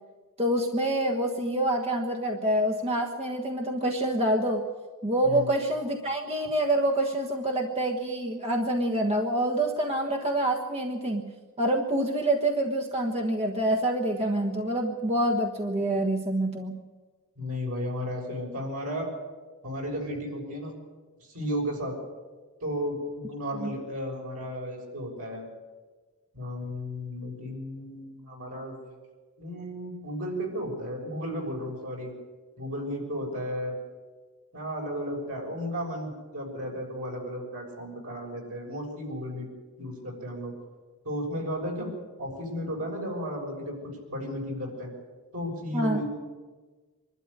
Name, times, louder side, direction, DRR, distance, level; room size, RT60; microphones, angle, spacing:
voice 1, 0.4-4.6 5.0-11.3 11.6-16.8 23.6-23.7 45.7-46.0, right 1 dB, 30° right, 2 dB, 1.4 m, -26 dB
voice 2, 17.4-19.1 19.6-20.7 21.2-21.9 22.6-25.5 26.3-28.8 29.4-32.1 32.6-33.7 34.5-39.4 39.8-40.5 41.0-41.9 42.2-44.9 45.3-46.1, equal, 80° right, -1 dB, 6.6 m, -34 dB
24.5 x 12.5 x 9.8 m, 1.3 s
head